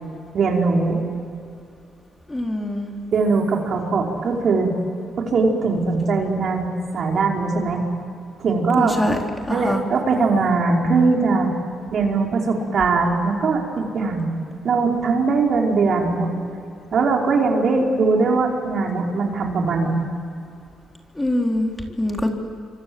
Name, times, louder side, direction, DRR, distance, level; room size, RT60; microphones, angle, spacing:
voice 1, 0.3-1.0 3.1-4.7 5.2-7.8 8.4-9.0 9.5-11.5 11.9-14.3 14.6-16.3 16.9-20.1, right 4 dB, 55° right, 0 dB, 5.0 m, -20 dB
voice 2, 2.3-2.9 8.8-9.2 9.5-9.8 21.1-22.3, left 1 dB, 15° left, 1 dB, 3.8 m, -23 dB
27.5 x 25.0 x 7.9 m, 2.6 s
cardioid pair, 90°, 0 cm